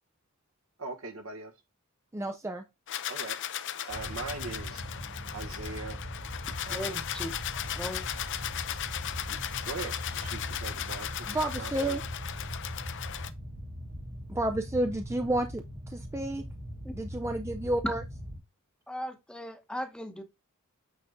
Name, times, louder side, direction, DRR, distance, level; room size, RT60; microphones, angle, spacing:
voice 1, 0.8-1.6 3.1-3.4 3.8-4.8 5.3-6.0 6.7-7.0 9.3-9.4 9.6-12.0, right 3 dB, 70° right, 1.2 m, -41 dB
voice 2, 2.1-2.6 11.3-12.0 14.3-16.4 16.9-18.0, right 1 dB, 10° right, 0.5 m, -31 dB
sound 1, 2.9-13.3, left 10 dB, 55° left, 0.6 m, -37 dB
sound 2, 3.9-18.4, equal, 50° right, 1.6 m, -40 dB
voice 3, 6.7-7.3 7.7-8.0 16.8-17.0 18.9-20.2, equal, 5° left, 1.0 m, -38 dB
8.6 x 4.0 x 3.5 m
head